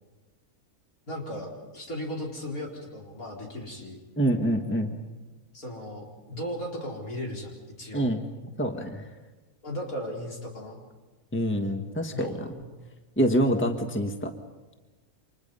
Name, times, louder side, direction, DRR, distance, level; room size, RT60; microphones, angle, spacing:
voice 1, 1.1-4.0 5.5-8.1 9.6-10.8 12.1-12.4, equal, 75° left, -1 dB, 4.8 m, -36 dB
voice 2, 4.2-5.0 7.9-8.2 8.6-9.0 11.3-12.3 13.2-14.3, equal, 10° left, 5 dB, 1.5 m, -26 dB
30.0 x 26.0 x 5.5 m, 1.2 s
omnidirectional pair, 1.5 m